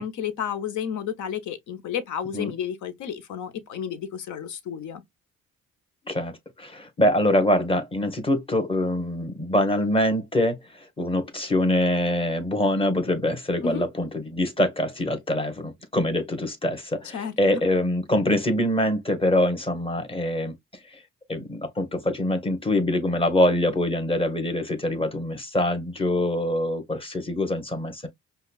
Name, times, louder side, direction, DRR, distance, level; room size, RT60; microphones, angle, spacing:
voice 1, 0.0-5.0 13.6-13.8 17.1-17.6, left 8 dB, 75° left, 0.8 m, -31 dB
voice 2, 6.6-20.5 21.3-28.1, left 1 dB, 20° left, 1.1 m, -24 dB
5.3 x 2.3 x 2.3 m
cardioid pair, 90°, 30 cm